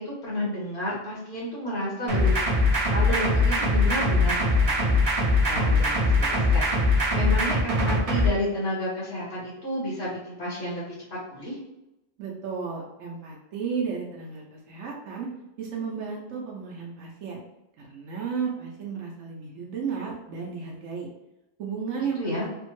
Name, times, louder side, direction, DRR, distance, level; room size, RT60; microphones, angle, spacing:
voice 1, 0.0-5.0 5.5-6.6 6.9-10.8 11.1-11.6 22.2-22.5, left 1 dB, 60° left, -7 dB, 1.2 m, -31 dB
sound 1, 2.1-8.3, left 2 dB, 35° right, 0.6 m, -22 dB
voice 2, 12.2-15.3 15.6-17.4 17.8-21.1 21.6-22.4, right 6 dB, 90° right, -3 dB, 1.0 m, -33 dB
3.4 x 2.1 x 3.0 m, 0.93 s
omnidirectional pair, 1.3 m